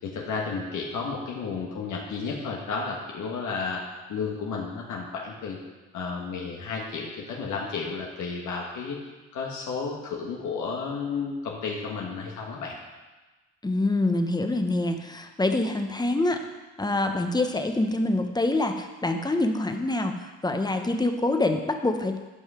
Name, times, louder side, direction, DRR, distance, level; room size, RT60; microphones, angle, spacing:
voice 1, 0.0-3.8 4.1-5.6 5.9-9.0 9.3-12.7, left 5 dB, 75° left, -2 dB, 1.4 m, -32 dB
voice 2, 13.6-16.4 16.8-22.2, left 2 dB, 15° left, 5 dB, 0.9 m, -25 dB
11.0 x 5.4 x 4.9 m, 1.2 s
cardioid pair, 90°, 30 cm